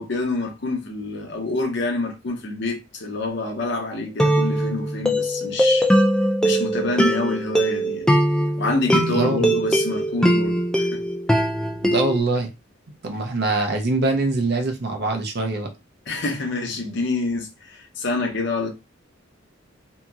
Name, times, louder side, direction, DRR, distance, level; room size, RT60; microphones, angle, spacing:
voice 1, 0.0-5.9 6.4-8.1 8.6-11.0 16.1-18.7, left 3 dB, 60° left, 0.8 m, -27 dB
sound 1, 3.3-3.6 4.2-12.2, right 1 dB, 5° left, 0.4 m, -21 dB
voice 2, 9.1-9.6 11.8-12.5 13.0-15.7, right 2 dB, 55° right, 0.7 m, -23 dB
2.8 x 2.7 x 2.4 m
head